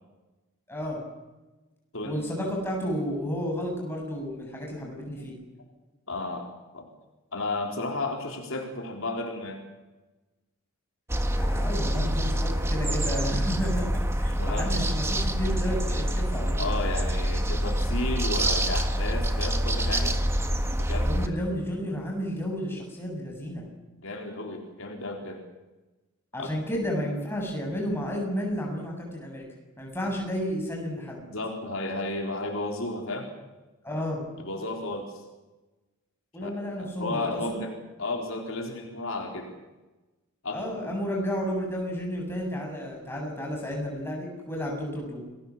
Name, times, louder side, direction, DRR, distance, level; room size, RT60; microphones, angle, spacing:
voice 1, 0.7-1.0 2.0-5.3 11.4-13.9 14.2-16.6 21.0-23.6 26.3-29.4 29.8-31.2 33.8-34.2 36.3-37.6 40.5-45.3, equal, 10° left, -1 dB, 7.9 m, -32 dB
voice 2, 6.1-6.9 7.3-9.6 14.4-14.8 16.6-20.1 20.8-21.4 24.0-25.4 26.4-26.5 31.3-33.3 34.4-35.2 36.4-36.5 36.8-37.7 38.0-39.5 40.4-41.1, left 2 dB, 65° left, 2 dB, 4.2 m, -33 dB
sound 1, 11.1-21.3, equal, 10° right, 1.4 m, -26 dB
29.0 x 20.5 x 7.4 m, 1.1 s
head